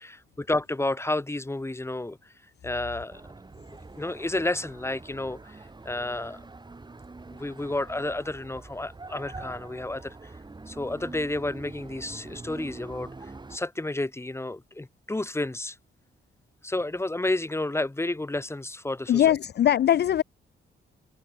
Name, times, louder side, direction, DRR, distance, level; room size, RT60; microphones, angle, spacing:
voice 1, 0.0-2.3 2.6-3.2 4.0-5.6 5.8-6.4 7.3-10.3 10.7-15.8 16.6-19.3, left 2 dB, 10° left, 4.6 m, -31 dB
sound 1, 3.1-13.6, right 3 dB, 20° right, 6.7 m, -44 dB
voice 2, 19.1-20.2, left 11 dB, 55° left, 0.6 m, -21 dB
cardioid pair, 110°, 21 cm